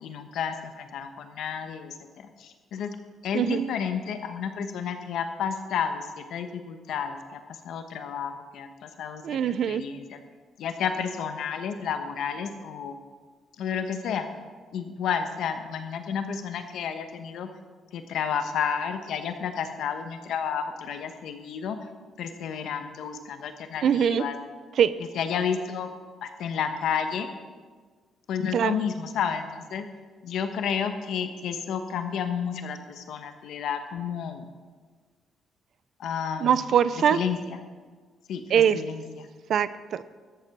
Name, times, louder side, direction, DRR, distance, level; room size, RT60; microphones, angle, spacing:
voice 1, 0.0-2.9 3.2-7.4 7.6-9.4 9.7-10.2 10.6-12.9 13.6-14.3 14.7-17.5 17.9-21.8 22.2-24.4 25.1-25.9 26.2-27.3 28.3-29.9 30.2-34.5 36.0-36.7 37.1-37.6 38.3-39.3, left 7 dB, 70° left, 7 dB, 1.1 m, -31 dB
voice 2, 3.3-3.7 9.2-9.8 23.8-24.2 24.8-24.9 28.5-28.8 36.4-37.2 38.5-38.8 39.5-40.0, right 8 dB, 55° right, 15 dB, 0.4 m, -22 dB
13.0 x 7.8 x 5.9 m, 1.5 s
cardioid pair, 155°, 0 cm